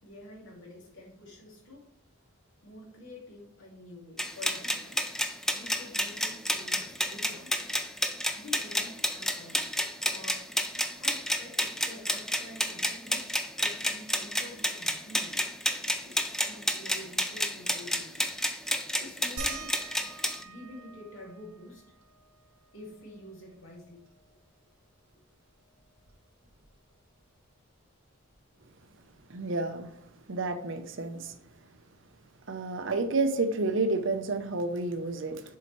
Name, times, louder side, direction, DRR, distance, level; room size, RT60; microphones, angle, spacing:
voice 1, 0.0-1.8 2.6-5.0 5.5-7.7 8.4-9.6 10.1-10.5 11.0-15.4 16.1-18.3 19.0-19.8 20.4-21.8 22.7-24.1 25.1-25.2, left 1 dB, 70° left, 2.4 m, -47 dB
sound 1, 4.2-20.4, equal, ahead, 0.4 m, -30 dB
sound 2, 19.4-24.5 24.8-24.9 25.3-27.0 28.3-28.4 29.1-29.2, right 4 dB, 80° right, 1.4 m, -47 dB
voice 2, 29.3-29.9 30.3-31.3 32.5-35.4, right 3 dB, 60° right, 0.7 m, -30 dB
7.1 x 4.8 x 3.1 m
head